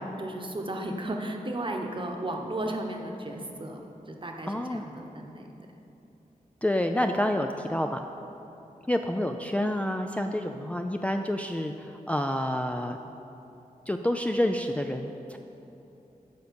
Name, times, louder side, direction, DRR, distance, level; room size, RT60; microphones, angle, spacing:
voice 1, 0.0-5.5, right 1 dB, 35° right, 2 dB, 1.1 m, -35 dB
voice 2, 4.5-4.8 6.6-8.0 8.9-13.0 13.9-15.4, left 1 dB, 10° left, 4 dB, 0.4 m, -28 dB
9.4 x 5.2 x 6.9 m, 2.9 s
cardioid pair, 65°, 15 cm